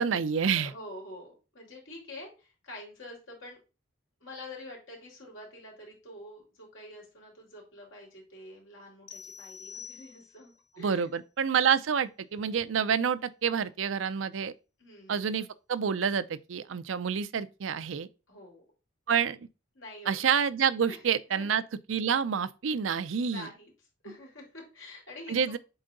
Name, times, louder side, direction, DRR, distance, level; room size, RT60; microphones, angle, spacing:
voice 1, 0.0-0.7 10.8-14.5 15.1-18.1 19.1-19.4 20.1-21.6 21.9-23.5 25.3-25.6, right 7 dB, 85° right, 0.5 m, -28 dB
voice 2, 0.5-3.6 4.2-11.1 14.8-15.3 18.3-18.6 19.8-20.2 20.9-21.0 21.3-21.5 23.3-23.7 24.0-25.6, left 1 dB, 90° left, 3.4 m, -47 dB
sound 1, 9.1-10.6, left 7 dB, 65° left, 0.9 m, -46 dB
7.9 x 3.8 x 3.9 m
head